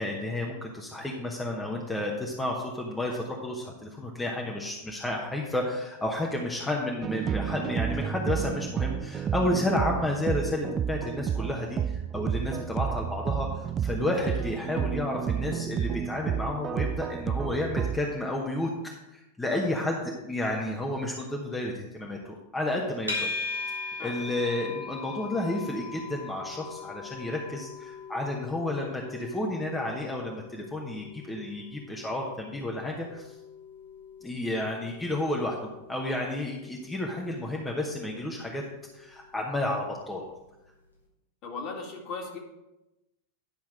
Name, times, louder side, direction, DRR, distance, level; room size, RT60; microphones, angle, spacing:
voice 1, 0.0-18.7 19.1-23.3 24.0-33.3 34.2-35.6 35.9-38.6 38.9-40.3, left 1 dB, 10° left, -1 dB, 1.1 m, -31 dB
sound 1, 7.0-18.0, right 8 dB, 25° right, 0.3 m, -31 dB
sound 2, 23.1-40.3, left 4 dB, 85° left, 1.9 m, -41 dB
voice 2, 24.0-24.3 41.4-42.4, left 4 dB, 40° left, 1 dB, 2.0 m, -37 dB
10.5 x 5.9 x 4.8 m, 0.97 s
figure-of-eight pair, 90°, 0 cm